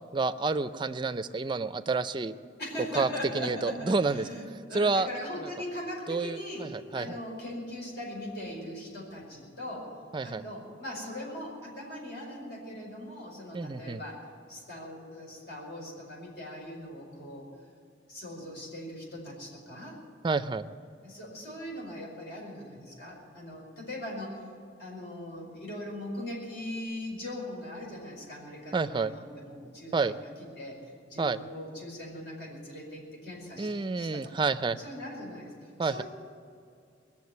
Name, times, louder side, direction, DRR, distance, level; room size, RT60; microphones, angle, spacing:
voice 1, 0.1-2.4 3.0-3.1 3.3-4.2 4.7-5.1 6.1-7.1 10.1-10.4 13.5-14.0 20.2-20.6 28.7-29.1 29.9-30.1 31.2-31.4 33.6-34.8 35.8-36.0, right 4 dB, 25° right, 11 dB, 0.4 m, -29 dB
voice 2, 2.6-9.9 10.2-17.5 18.1-20.0 21.0-24.5 24.8-30.3 30.5-34.5 34.8-36.0, left 1 dB, 60° left, -2 dB, 5.0 m, -40 dB
21.0 x 7.3 x 9.5 m, 2.4 s
head